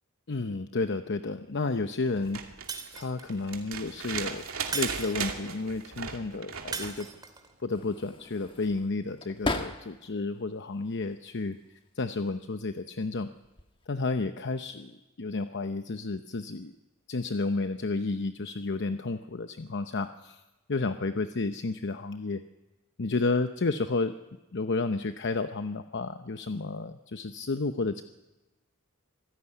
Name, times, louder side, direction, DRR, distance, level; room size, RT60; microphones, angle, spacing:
voice 1, 0.3-2.4 2.9-4.4 4.7-7.1 7.6-11.6 12.0-13.3 13.9-16.7 17.1-20.4 20.7-22.4 23.0-24.1 24.5-28.0, left 3 dB, 55° left, 9 dB, 0.8 m, -31 dB
sound 1, 2.1-7.0 8.6-8.7, right 6 dB, 70° right, 2.6 m, -37 dB
Shatter, 2.7-3.4 4.7-5.5 6.7-7.5, right 5 dB, 20° right, 2.4 m, -38 dB
sound 2, 7.7-10.2 10.6-11.5 12.4-12.7 13.1-13.9, left 2 dB, 25° left, 1.5 m, -37 dB
26.0 x 15.5 x 9.9 m, 1.1 s
head